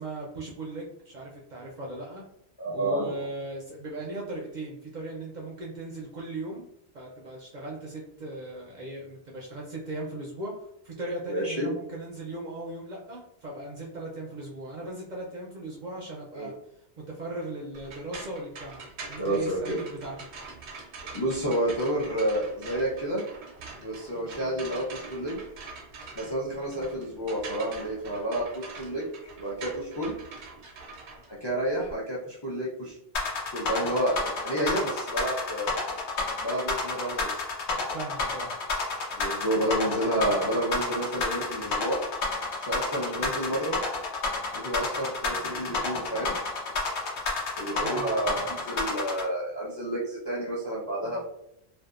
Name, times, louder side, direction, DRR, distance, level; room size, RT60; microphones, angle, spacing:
voice 1, 0.0-2.2 2.7-6.7 6.9-16.5 17.1-18.8 19.1-20.1 37.9-38.5 47.8-48.4, right 2 dB, 55° right, -3 dB, 0.5 m, -38 dB
voice 2, 2.6-3.2 11.3-11.7 16.3-16.5 19.2-19.8 21.1-23.3 23.8-25.4 26.1-29.0 29.4-30.1 31.4-33.0 33.5-35.7 36.4-37.4 39.1-42.0 42.6-43.8 44.5-46.3 47.6-51.2, right 1 dB, 35° left, -5 dB, 0.4 m, -30 dB
sound 1, 17.7-31.9, right 4 dB, 80° right, 0.9 m, -44 dB
sound 2, 33.1-49.2, left 3 dB, 90° left, 1.0 m, -29 dB
2.6 x 2.2 x 2.3 m, 0.75 s
omnidirectional pair, 1.1 m